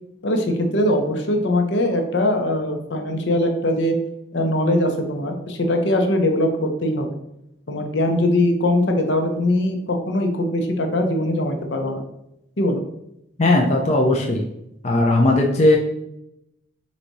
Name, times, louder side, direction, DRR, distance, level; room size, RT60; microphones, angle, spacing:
voice 1, 0.2-4.0 4.3-7.1 7.7-12.0 12.6-12.8, left 1 dB, 70° left, 4 dB, 0.7 m, -21 dB
voice 2, 13.4-14.5 14.8-15.8, left 2 dB, 35° left, 0 dB, 0.5 m, -17 dB
4.1 x 2.7 x 4.6 m, 0.81 s
head